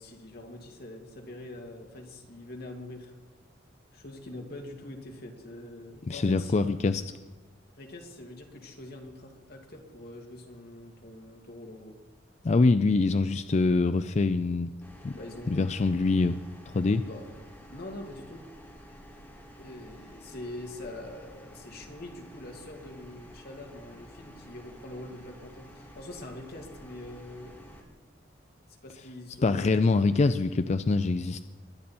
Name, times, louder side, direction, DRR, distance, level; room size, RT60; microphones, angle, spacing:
voice 1, 0.0-3.1 3.9-6.6 7.8-12.0 15.1-15.8 17.0-17.3 17.7-18.5 19.6-27.6 28.7-30.0, left 1 dB, 55° left, 2 dB, 2.3 m, -44 dB
voice 2, 6.1-7.0 12.4-14.7 15.0-15.1 15.5-16.4 16.7-17.0 29.4-31.4, left 3 dB, 35° left, 11 dB, 0.4 m, -24 dB
sound 1, 14.8-27.8, equal, 10° left, 2.2 m, -51 dB
22.0 x 10.0 x 4.4 m, 1.2 s
head